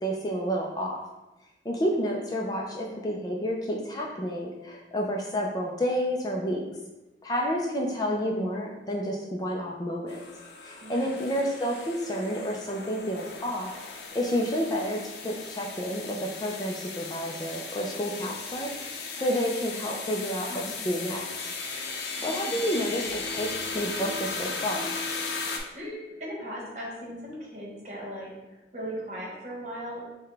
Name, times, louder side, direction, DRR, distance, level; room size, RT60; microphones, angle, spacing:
voice 1, 0.0-1.1 1.6-6.6 7.2-10.2 10.6-13.7 14.1-21.5 22.2-24.9, equal, 20° left, -1 dB, 0.4 m, -30 dB
voice 2, 7.9-8.6 10.8-11.3 20.4-20.8 22.1-22.8 25.7-30.0, equal, 40° right, -4 dB, 1.2 m, -39 dB
sound 1, 10.1-25.6, left 4 dB, 70° left, 0.6 m, -36 dB
5.7 x 2.2 x 3.3 m, 1.0 s
head